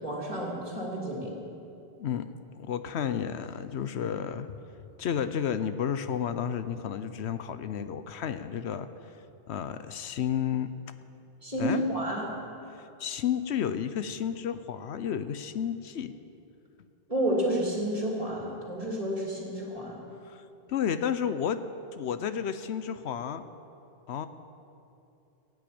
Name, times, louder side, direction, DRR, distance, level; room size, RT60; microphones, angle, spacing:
voice 1, 0.0-1.4 11.4-12.3 17.1-20.0, right 1 dB, 35° right, -2 dB, 3.0 m, -30 dB
voice 2, 2.0-2.3 2.6-4.6 5.0-8.9 9.5-10.7 11.6-11.8 13.0-16.1 20.3-20.4 20.7-21.6 21.9-23.4 24.1-24.3, left 8 dB, 80° left, 11 dB, 1.0 m, -31 dB
16.5 x 9.7 x 8.6 m, 2.8 s
omnidirectional pair, 1.1 m